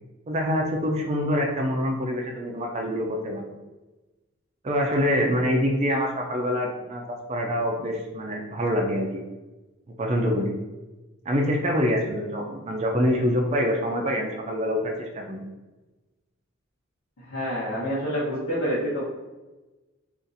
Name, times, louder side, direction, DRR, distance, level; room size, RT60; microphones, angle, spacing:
voice 1, 0.3-3.6 4.6-7.0 7.3-9.2 10.0-10.5 11.3-15.5, equal, 30° right, 0 dB, 0.4 m, -25 dB
voice 2, 17.3-19.0, equal, 80° left, -9 dB, 0.8 m, -27 dB
2.6 x 2.5 x 3.9 m, 1.1 s
head